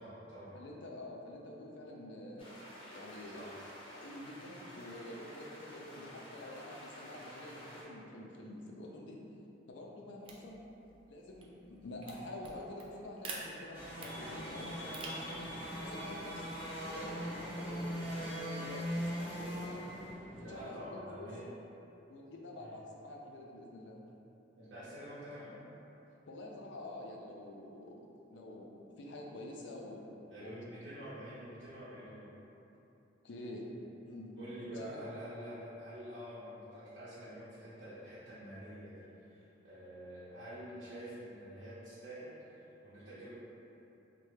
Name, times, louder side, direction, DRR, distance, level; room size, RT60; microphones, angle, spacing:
voice 1, 0.0-0.6 3.3-3.5 20.4-21.4 22.6-22.7 24.6-25.6 30.3-32.3 34.4-43.3, equal, 90° right, -12 dB, 0.7 m, -47 dB
voice 2, 0.5-2.5 2.9-3.5 3.9-9.2 9.7-10.6 11.1-16.5 16.9-19.8 20.4-21.3 22.1-24.0 26.3-30.1 30.4-30.6 33.2-33.6 34.0-34.3 34.7-35.0, left 1 dB, 75° left, -1 dB, 0.4 m, -47 dB
sound 1, 2.4-7.8, equal, 30° left, 0.6 m, -51 dB
sound 2, 10.2-18.1, right 3 dB, 30° right, 0.3 m, -51 dB
sound 3, 13.7-20.7, equal, 10° right, 1.0 m, -40 dB
3.2 x 2.2 x 3.2 m, 2.9 s
head